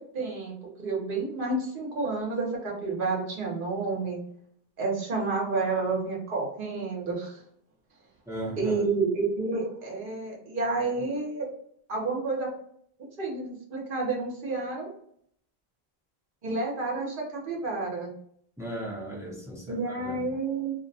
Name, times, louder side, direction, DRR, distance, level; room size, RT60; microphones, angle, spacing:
voice 1, 0.1-0.5 0.8-4.2 4.8-7.4 8.6-11.5 11.9-12.5 13.2-14.9 16.4-18.1 19.7-20.7, right 3 dB, 60° right, -1 dB, 1.0 m, -30 dB
voice 2, 8.3-8.9 18.6-20.2, right 1 dB, 5° right, -4 dB, 0.6 m, -37 dB
2.5 x 2.1 x 2.6 m, 0.67 s
omnidirectional pair, 1.0 m